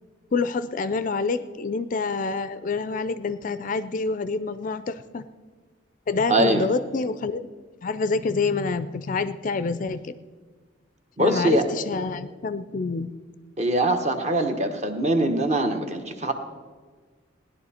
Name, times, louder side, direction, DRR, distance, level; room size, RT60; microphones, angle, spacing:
voice 1, 0.3-5.2 6.1-7.5 7.8-10.1 11.2-13.1, left 4 dB, 40° left, 13 dB, 0.4 m, -27 dB
voice 2, 6.3-6.7 11.2-11.7 13.6-16.3, right 1 dB, 35° right, 5 dB, 1.1 m, -22 dB
17.0 x 11.0 x 4.3 m, 1.5 s
head